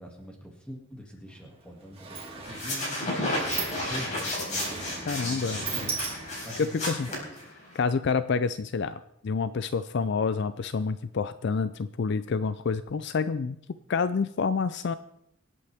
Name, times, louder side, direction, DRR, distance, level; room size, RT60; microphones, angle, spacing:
voice 1, 0.0-3.4 3.8-6.0 6.5-7.2, equal, 5° left, 0 dB, 2.2 m, -43 dB
Sliding door, 1.3-1.4 1.7-6.6, right 5 dB, 25° right, 2.3 m, -38 dB
sound 1, 2.4-7.8, left 1 dB, 35° left, 4.4 m, -32 dB
voice 2, 5.1-5.9 6.6-7.1 7.7-13.6 13.9-14.9, left 5 dB, 50° left, 13 dB, 0.4 m, -28 dB
25.5 x 8.5 x 3.5 m, 0.77 s
head